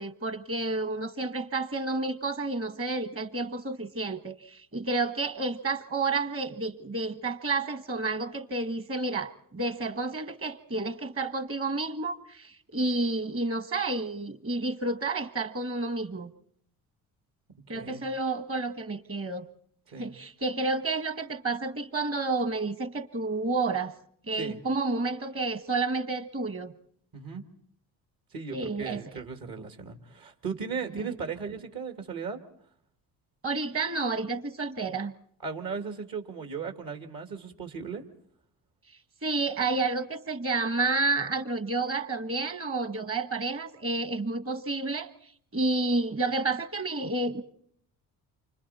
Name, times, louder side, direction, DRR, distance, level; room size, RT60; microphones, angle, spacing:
voice 1, 0.0-16.3 17.7-19.5 20.0-23.9 24.3-26.7 28.5-29.0 31.0-31.2 33.4-35.1 39.2-45.1 45.5-47.4, right 3 dB, 35° right, 11 dB, 1.5 m, -30 dB
voice 2, 17.7-18.0 19.9-20.1 24.4-24.6 27.1-27.5 28.3-32.4 35.4-38.1, right 5 dB, 55° right, 6 dB, 2.3 m, -37 dB
29.0 x 25.5 x 4.3 m, 0.64 s
supercardioid pair, 70°, 41 cm